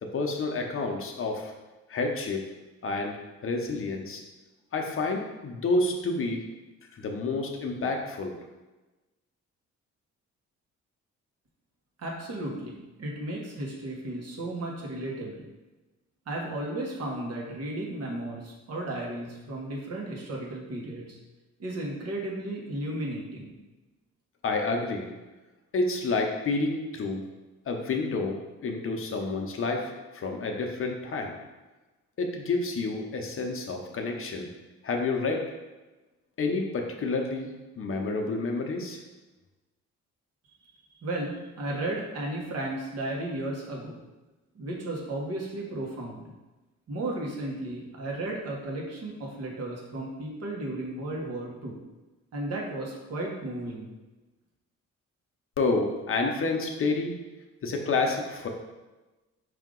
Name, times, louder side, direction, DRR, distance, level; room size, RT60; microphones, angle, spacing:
voice 1, 0.0-1.5 1.9-2.4 2.8-4.2 4.7-6.4 6.9-8.3 24.4-25.1 25.7-27.2 27.7-31.3 32.2-34.5 34.8-35.5 36.4-37.5 37.8-39.0 55.6-57.1 57.6-58.5, left 3 dB, 45° left, 2 dB, 0.7 m, -29 dB
voice 2, 12.0-15.4 16.3-21.2 21.6-23.5 41.0-44.0 44.5-46.2 46.9-51.7 52.3-53.9, right 1 dB, 55° right, -2 dB, 1.2 m, -34 dB
5.1 x 2.8 x 3.7 m, 1.1 s
cardioid pair, 90°, 30 cm